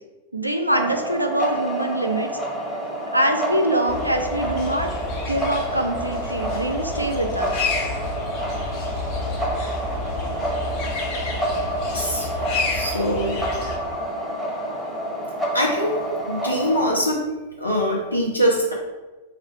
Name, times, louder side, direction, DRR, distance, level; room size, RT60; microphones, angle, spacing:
voice 1, 0.3-2.3 3.1-4.9 5.3-7.6, right 1 dB, 90° right, 4 dB, 0.4 m, -24 dB
sound 1, 0.7-17.0, right 1 dB, ahead, 0.9 m, -28 dB
sound 2, 3.9-13.8, left 3 dB, 40° left, 0.7 m, -30 dB
voice 2, 11.9-12.3 12.7-13.4 15.5-16.0 16.3-17.2 17.6-18.7, equal, 85° left, -2 dB, 0.5 m, -23 dB
3.5 x 2.4 x 4.5 m, 1.2 s
figure-of-eight pair, 95°, 0 cm